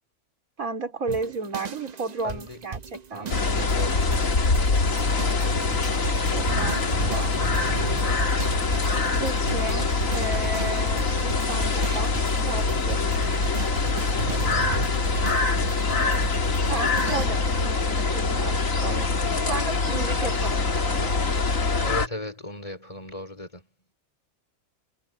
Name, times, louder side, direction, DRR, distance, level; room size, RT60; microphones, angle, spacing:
voice 1, 0.6-3.3 6.3-7.3 9.2-13.0 16.7-19.1 19.4-21.2, right 3 dB, 75° right, 4.4 m, -33 dB
sound 1, 1.1-17.3, right 5 dB, 40° right, 0.7 m, -36 dB
voice 2, 2.2-2.6 3.1-4.2 4.5-4.6 6.9-7.2 8.0-8.3 11.9-12.0 14.1-14.7 18.8-19.3 21.8-23.6, left 1 dB, 25° left, 3.6 m, -37 dB
sound 2, 3.3-22.1, left 3 dB, 65° left, 2.5 m, -24 dB
omnidirectional pair, 1.5 m